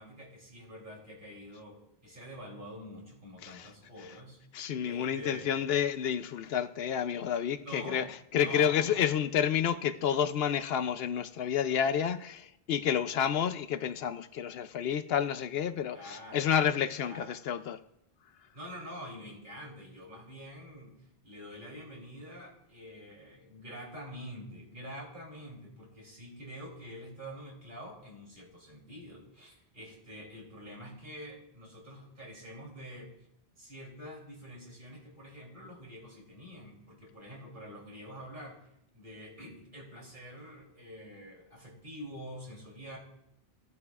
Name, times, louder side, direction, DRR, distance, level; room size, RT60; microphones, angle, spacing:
voice 1, 0.0-4.4 4.8-5.7 7.6-9.1 15.9-16.5 17.0-17.3 18.5-21.0 21.2-33.1 33.6-38.6 38.9-43.0, equal, 50° right, 3.4 m, -46 dB
voice 2, 4.5-8.1 8.3-17.8, left 8 dB, 75° left, 0.8 m, -30 dB
14.5 x 11.0 x 2.4 m
omnidirectional pair, 1.1 m